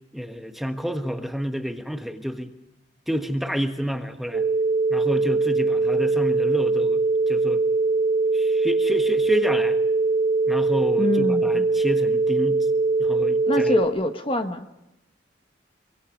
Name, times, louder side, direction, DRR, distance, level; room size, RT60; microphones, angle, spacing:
voice 1, 0.1-2.5 3.1-4.4 4.9-7.6 8.3-9.8 10.5-12.7 13.0-13.8, equal, ahead, 5 dB, 1.3 m, -29 dB
sound 1, 4.3-13.8, right 3 dB, 40° right, 2.0 m, -22 dB
voice 2, 11.0-11.6 13.5-14.7, left 1 dB, 30° left, 6 dB, 1.3 m, -25 dB
25.5 x 24.0 x 5.2 m, 0.93 s
head